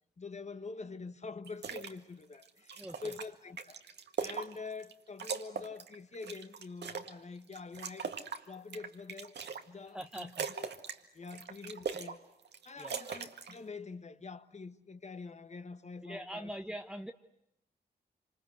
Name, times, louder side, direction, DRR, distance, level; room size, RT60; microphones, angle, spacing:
voice 1, 0.2-3.8 4.2-8.1 8.5-9.4 9.7-10.7 11.1-12.2 12.6-16.5, left 4 dB, 40° left, 1.4 m, -45 dB
sound 1, 1.4-1.9 2.3-4.9 5.2-7.1 7.5-9.6 10.0-11.0 11.3-12.2 12.4-13.6, right 6 dB, 75° right, 1.9 m, -40 dB
voice 2, 2.8-3.1 9.9-10.5 12.8-12.9 16.0-17.1, right 1 dB, 5° right, 1.2 m, -42 dB
26.5 x 26.0 x 8.0 m
cardioid pair, 70°, 18 cm